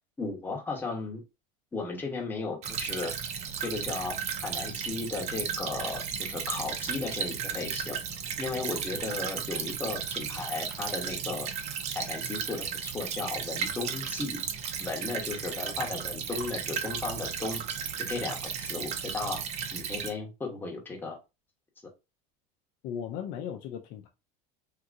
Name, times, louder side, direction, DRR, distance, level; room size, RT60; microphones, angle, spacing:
voice 1, 0.2-1.2 1.7-3.1 3.6-8.0 8.4-11.5 11.9-14.4 14.8-17.6 18.0-19.4 19.7-21.2, left 3 dB, 10° left, 1.0 m, -35 dB
Stream / Trickle dribble, 2.6-20.1, right 7 dB, 35° right, 0.6 m, -35 dB
voice 2, 22.8-24.1, left 8 dB, 50° left, 0.5 m, -37 dB
3.6 x 2.8 x 2.5 m
supercardioid pair, 140°, 19 cm